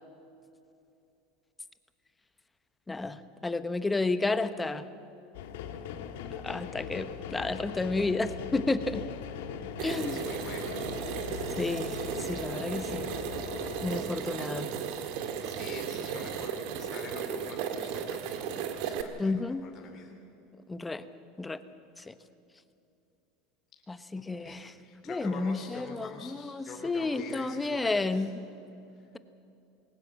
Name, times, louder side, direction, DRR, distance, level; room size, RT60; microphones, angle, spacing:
voice 1, 2.9-4.8 6.4-9.0 9.8-10.2 11.6-13.1 13.8-14.7 19.2-19.6 20.7-21.0 21.4-21.6 22.0-22.1 23.9-24.7 25.1-28.3, left 3 dB, 10° left, 12 dB, 1.0 m, -31 dB
sound 1, 5.3-14.0, left 8 dB, 80° left, 1.6 m, -40 dB
voice 2, 9.8-10.8 15.4-19.3 19.6-20.1 24.2-28.3, left 5 dB, 40° left, 1 dB, 2.8 m, -45 dB
sound 2, 9.8-19.0, right 8 dB, 65° right, 1.9 m, -35 dB
21.0 x 19.0 x 7.6 m, 2.8 s
supercardioid pair, 120°, 0 cm